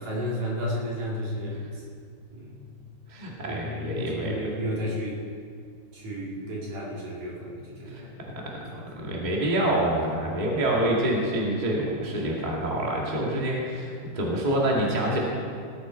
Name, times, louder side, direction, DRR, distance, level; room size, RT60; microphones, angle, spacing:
voice 1, 0.0-1.8 2.3-2.7 3.5-5.2 5.9-8.2 8.5-9.0, equal, 45° right, -4 dB, 3.5 m, -33 dB
voice 2, 3.1-4.5 7.9-8.0 8.5-8.6 8.9-15.2, right 1 dB, 25° right, -3 dB, 1.0 m, -26 dB
19.0 x 13.0 x 4.6 m, 2.3 s
omnidirectional pair, 5.0 m